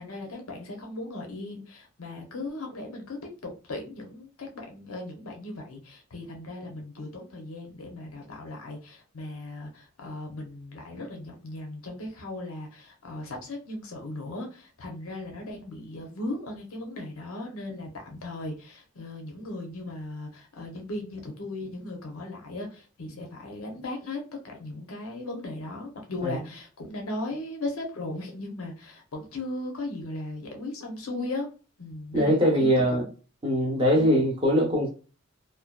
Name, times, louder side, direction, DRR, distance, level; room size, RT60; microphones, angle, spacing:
voice 1, 0.0-31.5 31.8-32.7 33.0-33.1 33.9-34.1, left 2 dB, 85° left, 0.7 m, -37 dB
voice 2, 32.1-33.0 33.4-34.9, equal, 25° right, 0.7 m, -22 dB
2.6 x 2.2 x 2.2 m
head